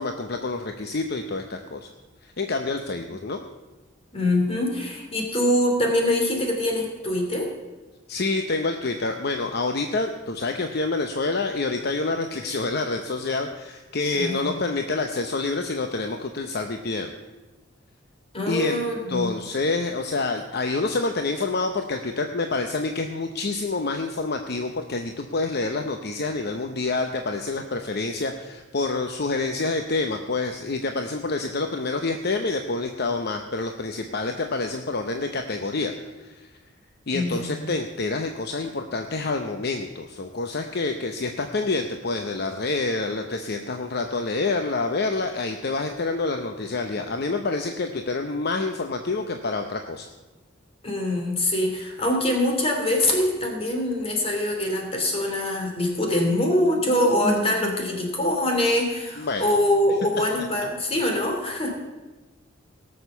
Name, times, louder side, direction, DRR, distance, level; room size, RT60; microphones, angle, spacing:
voice 1, 0.0-1.9 2.2-3.4 8.1-17.1 18.5-18.8 19.1-36.5 37.1-50.1 59.2-59.4, left 3 dB, 55° left, 5 dB, 0.8 m, -27 dB
voice 2, 4.1-7.5 14.1-14.5 18.3-19.3 37.1-37.5 50.8-61.7, left 1 dB, 30° left, 1 dB, 2.8 m, -24 dB
18.0 x 6.7 x 6.8 m, 1.2 s
head